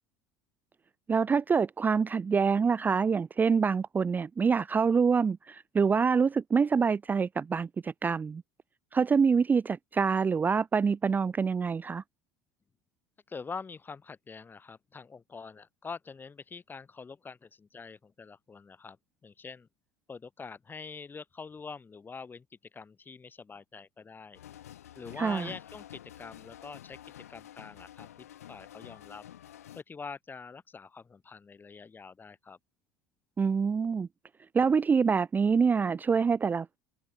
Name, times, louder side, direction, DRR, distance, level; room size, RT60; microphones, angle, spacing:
voice 1, 1.1-8.4 8.9-12.0 25.2-25.5 33.4-34.1 34.5-36.8, right 5 dB, 25° right, 0.4 m, -26 dB
voice 2, 13.3-19.0 19.2-19.7 20.1-22.5 22.7-24.4 25.0-27.0 27.3-29.2 29.8-32.6, left 5 dB, 25° left, 3.6 m, -45 dB
sound 1, 24.3-29.8, left 11 dB, 85° left, 4.0 m, -49 dB
hypercardioid pair, 75°, 8 cm